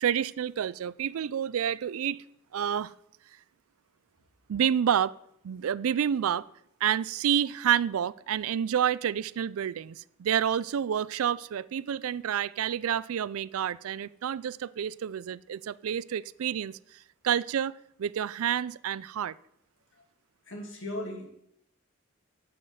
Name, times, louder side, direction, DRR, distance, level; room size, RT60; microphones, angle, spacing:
voice 1, 0.0-2.2 2.5-2.9 4.5-5.1 5.4-6.5 6.8-16.8 17.2-17.7 18.0-19.3, right 9 dB, 75° right, 0.4 m, -29 dB
voice 2, 20.5-21.3, left 1 dB, 60° left, 2.4 m, -37 dB
7.8 x 7.5 x 8.0 m
head